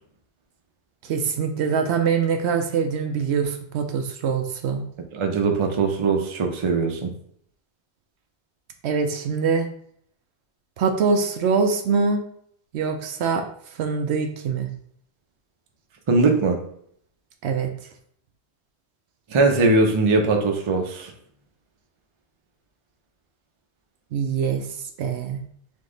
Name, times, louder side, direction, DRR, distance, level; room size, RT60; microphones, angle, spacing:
voice 1, 1.0-4.8 8.8-9.7 10.8-12.2 12.7-13.5 13.8-14.7 17.4-17.7 24.1-24.7 25.0-25.4, right 5 dB, 75° right, 5 dB, 0.8 m, -23 dB
voice 2, 5.1-7.1 16.1-16.6 19.3-21.1, right 3 dB, 35° right, 3 dB, 0.5 m, -20 dB
3.7 x 2.9 x 3.8 m, 0.65 s
omnidirectional pair, 1.1 m